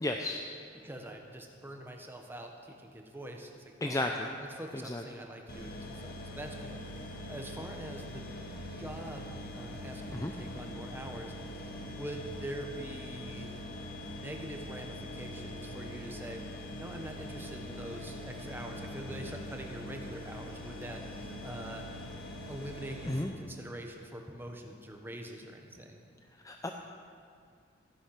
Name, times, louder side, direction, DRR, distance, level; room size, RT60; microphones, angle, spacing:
voice 1, 0.0-0.4 3.8-4.3 4.8-5.0 10.1-10.3 23.1-23.3 26.4-26.7, left 1 dB, 15° left, 3 dB, 0.6 m, -33 dB
voice 2, 0.7-4.1 4.4-6.8 7.3-8.3 8.8-13.6 14.0-16.5 16.8-21.9 22.5-26.1, right 1 dB, 10° right, 3 dB, 1.2 m, -44 dB
sound 1, 5.5-23.2, left 1 dB, 50° left, 1.9 m, -43 dB
15.0 x 10.0 x 5.9 m, 2.2 s
head